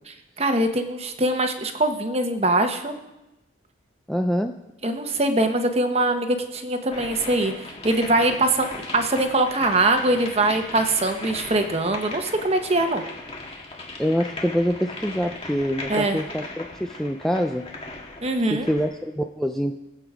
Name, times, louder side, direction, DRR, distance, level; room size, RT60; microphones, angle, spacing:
voice 1, 0.4-3.0 4.8-13.0 15.9-16.2 18.2-18.7, right 2 dB, 30° right, 6 dB, 1.1 m, -22 dB
voice 2, 4.1-4.5 14.0-17.6 18.5-19.8, equal, ahead, 4 dB, 0.4 m, -25 dB
sound 1, 6.9-19.0, left 2 dB, 30° left, 1.7 m, -37 dB
21.0 x 8.0 x 4.9 m, 0.96 s
head